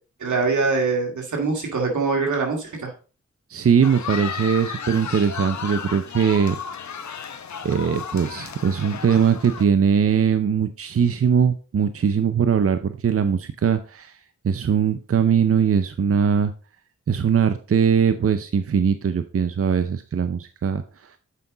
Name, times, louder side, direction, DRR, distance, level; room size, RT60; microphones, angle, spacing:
voice 1, 0.2-2.9, right 4 dB, 85° right, 2 dB, 2.3 m, -23 dB
voice 2, 3.5-6.6 7.6-14.2 14.4-16.5 17.1-21.2, right 7 dB, 50° right, 10 dB, 0.6 m, -21 dB
sound 1, 3.8-9.6, left 7 dB, 75° left, 0.9 m, -33 dB
8.4 x 5.4 x 3.8 m, 0.36 s
cardioid pair, 50°, 29 cm